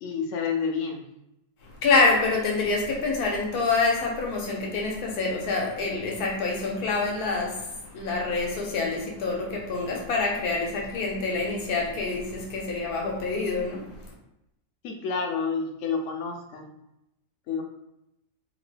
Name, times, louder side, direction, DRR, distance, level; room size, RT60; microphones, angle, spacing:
voice 1, 0.0-1.1 14.8-16.7 17.5-17.6, left 5 dB, 65° left, 3 dB, 0.8 m, -29 dB
voice 2, 1.6-14.1, left 3 dB, 80° left, -1 dB, 1.4 m, -26 dB
3.7 x 2.1 x 3.2 m, 0.86 s
omnidirectional pair, 1.6 m